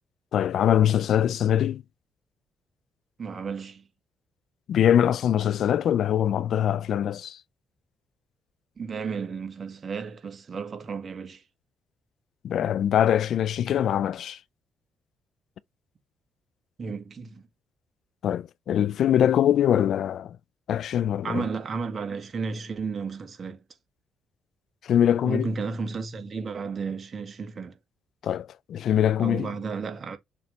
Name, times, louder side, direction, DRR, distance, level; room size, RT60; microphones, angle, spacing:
voice 1, 0.3-1.8 4.7-7.4 12.4-14.4 18.2-20.4 20.7-21.4 24.8-25.5 28.2-29.5, left 10 dB, 70° left, 0.4 m, -23 dB
voice 2, 3.2-3.9 8.8-11.4 16.8-17.4 21.2-23.6 25.2-27.8 29.2-30.2, right 5 dB, 40° right, 1.9 m, -33 dB
6.8 x 3.4 x 4.1 m
cardioid pair, 90°, 0 cm